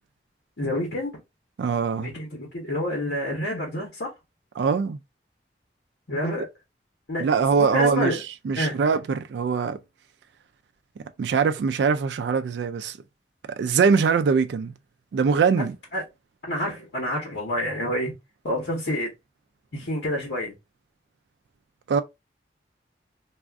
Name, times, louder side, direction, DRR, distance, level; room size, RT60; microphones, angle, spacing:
voice 1, 0.6-1.2 2.0-4.1 6.1-6.5 7.1-8.2 8.6-8.8 15.6-15.7 15.9-16.0 16.5-18.1 18.4-19.1 19.7-20.6, left 1 dB, 90° left, 1.0 m, -28 dB
voice 2, 1.6-2.1 4.6-5.0 7.2-8.2 8.4-9.8 11.2-13.0 13.5-14.7 15.1-15.7 21.9-22.0, right 5 dB, 80° right, 0.3 m, -22 dB
2.4 x 2.4 x 3.3 m
head